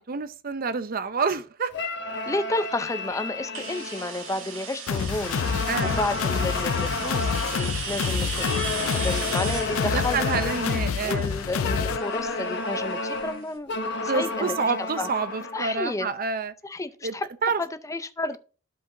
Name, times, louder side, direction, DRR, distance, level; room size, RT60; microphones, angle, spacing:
voice 1, 0.1-1.7 5.7-6.0 9.9-11.3 14.1-16.5 17.0-17.1 17.4-17.6, right 4 dB, 45° right, 0.7 m, -28 dB
sound 1, 1.7-4.8 5.2-7.8 8.3-11.0 11.6-15.9, left 3 dB, 60° left, 1.2 m, -32 dB
voice 2, 2.3-8.5 8.8-10.5 11.0-13.7 14.0-14.5 15.0-15.1 15.5-16.1 16.6-17.3 17.6-18.4, left 2 dB, 15° left, 0.6 m, -31 dB
sound 2, 3.5-13.2, right 6 dB, 80° right, 2.3 m, -37 dB
sound 3, 4.9-12.0, left 6 dB, 90° left, 0.4 m, -28 dB
12.5 x 5.1 x 2.6 m
head